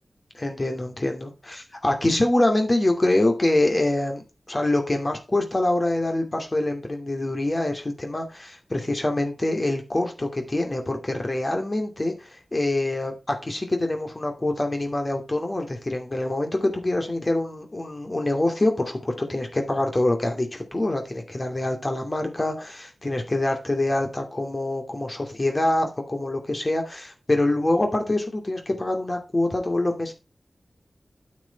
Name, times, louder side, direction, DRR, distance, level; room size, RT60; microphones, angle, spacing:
voice 1, 0.3-30.1, left 1 dB, 40° left, 4 dB, 2.5 m, -25 dB
9.0 x 6.6 x 4.5 m, 0.28 s
cardioid pair, 40°, 0 cm